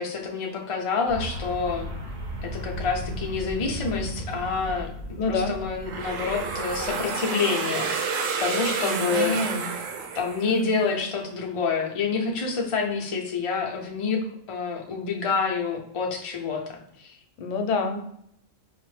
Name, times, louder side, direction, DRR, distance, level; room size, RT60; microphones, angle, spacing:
voice 1, 0.0-1.9 2.4-4.9 5.2-7.9 8.4-9.4 10.1-14.2 14.5-17.2, left 5 dB, 45° left, 1 dB, 0.4 m, -27 dB
sound 1, 1.1-7.1, equal, 45° right, 0.6 m, -36 dB
voice 2, 5.2-5.5 8.8-9.7 17.4-18.0, left 3 dB, 75° left, 5 dB, 0.9 m, -27 dB
sound 2, 5.9-10.8, right 5 dB, 85° right, 1.0 m, -30 dB
4.9 x 2.0 x 3.1 m, 0.72 s
omnidirectional pair, 1.3 m